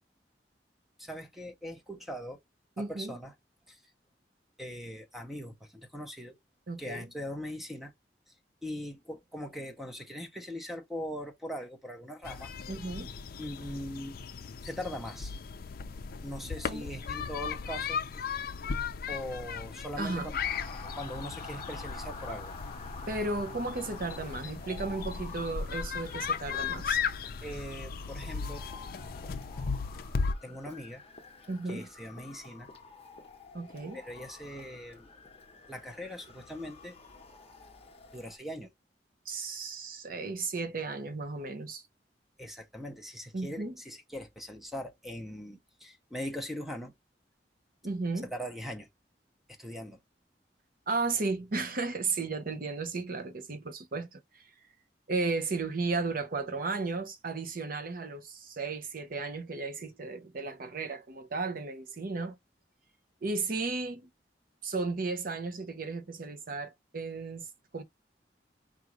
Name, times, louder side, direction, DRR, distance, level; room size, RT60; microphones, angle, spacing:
voice 1, 1.0-2.4 2.8-3.3 3.7-3.8 4.6-6.4 6.8-7.9 8.6-12.5 13.4-14.2 14.6-15.3 16.2-18.0 19.1-20.4 21.0-22.5 27.4-28.6 30.4-31.0 31.7-32.7 33.9-35.1 35.7-37.0 38.1-38.7 42.4-46.9 48.2-48.9 49.5-50.0, equal, ahead, 0.7 m, -40 dB
voice 2, 2.8-3.2 6.7-7.1 12.7-13.1 16.7-16.9 20.0-20.3 23.1-27.0 31.5-31.9 33.5-34.0 39.3-41.8 43.3-43.7 47.8-48.3 50.9-54.4 55.1-62.4 63.2-64.1 64.6-67.5 67.7-67.8, right 3 dB, 55° right, 0.7 m, -34 dB
sound 1, 12.2-30.3, left 5 dB, 55° left, 0.5 m, -36 dB
Motor vehicle (road) / Siren, 20.4-38.4, left 4 dB, 35° left, 0.8 m, -48 dB
4.9 x 2.4 x 3.0 m
head